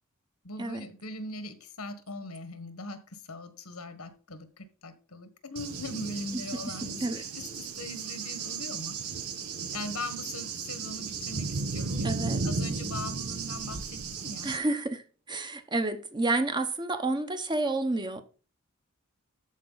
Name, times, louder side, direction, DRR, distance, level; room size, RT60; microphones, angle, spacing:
voice 1, 0.4-7.0 7.3-9.0 9.7-14.5, left 2 dB, 90° left, 1.5 m, -40 dB
Cricket / Thunder, 5.6-14.6, right 4 dB, 90° right, 1.1 m, -35 dB
voice 2, 12.0-12.4 14.4-18.2, right 2 dB, 20° right, 0.9 m, -30 dB
13.5 x 4.7 x 4.0 m
head